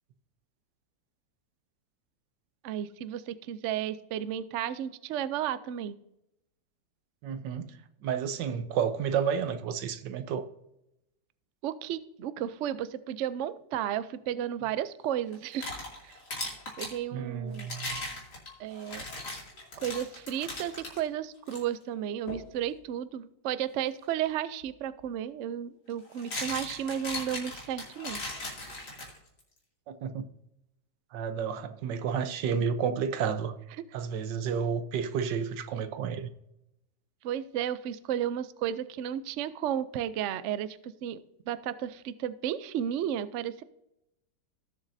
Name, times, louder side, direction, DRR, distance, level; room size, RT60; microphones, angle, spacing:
voice 1, 2.6-6.0 11.6-15.7 16.0-16.2 16.8-17.7 18.6-19.0 19.8-28.2 37.2-43.6, right 10 dB, 70° right, 0.7 m, -33 dB
voice 2, 7.2-7.8 8.0-10.4 17.1-18.0 29.9-30.3 31.1-33.5 33.9-36.3, right 7 dB, 90° right, 1.5 m, -31 dB
sound 1, 15.3-17.0 17.5-21.0 21.5-21.6 22.3-22.5 24.6-24.7 25.9-29.4, left 2 dB, 70° left, 3.2 m, -38 dB
18.0 x 7.2 x 2.7 m
omnidirectional pair, 1.8 m